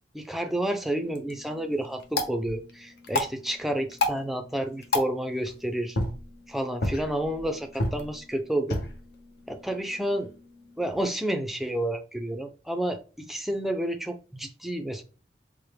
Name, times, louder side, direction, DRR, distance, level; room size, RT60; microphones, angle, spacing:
voice 1, 0.1-6.0 6.5-8.8 9.5-10.3 10.8-15.0, right 1 dB, ahead, 5 dB, 0.4 m, -30 dB
sound 1, 1.0-11.0, left 2 dB, 70° left, 0.7 m, -34 dB
4.5 x 2.1 x 3.2 m, 0.35 s
head